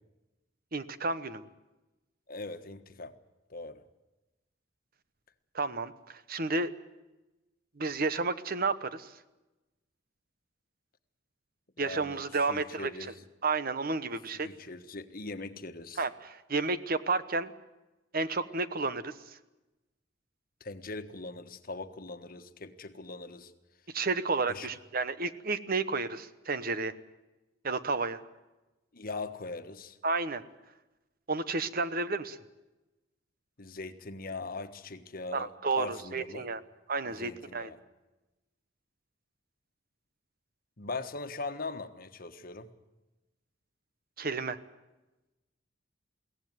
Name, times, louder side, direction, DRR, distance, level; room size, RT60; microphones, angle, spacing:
voice 1, 0.7-1.5 5.5-6.7 7.8-9.1 11.8-13.1 13.4-14.5 16.0-17.5 18.1-19.1 23.9-26.9 27.6-28.2 30.0-30.4 31.3-32.4 35.3-36.6 36.9-37.7 44.2-44.6, right 3 dB, 50° right, 13 dB, 1.1 m, -31 dB
voice 2, 2.3-3.1 3.5-3.8 11.8-13.1 14.3-16.1 20.6-23.5 24.5-24.7 28.9-30.0 33.6-35.5 35.8-36.5 37.0-37.8 40.8-42.7, left 3 dB, 50° left, 9 dB, 1.4 m, -41 dB
22.5 x 17.5 x 9.5 m, 1.0 s
head